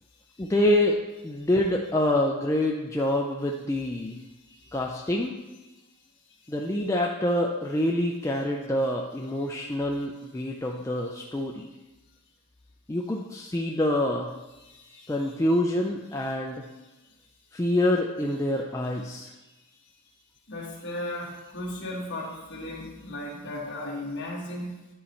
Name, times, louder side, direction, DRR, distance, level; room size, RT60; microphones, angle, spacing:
voice 1, 0.4-4.1 4.7-5.3 6.5-11.7 12.9-14.3 15.1-16.6 17.5-19.3, left 1 dB, 15° left, 0 dB, 0.3 m, -26 dB
voice 2, 4.2-4.8 5.9-6.5 9.4-9.5 14.5-15.3 16.8-17.1 17.5-17.6 19.4-19.9 20.5-24.8, left 1 dB, 50° left, -2 dB, 1.5 m, -38 dB
10.0 x 4.2 x 4.4 m, 1.1 s
head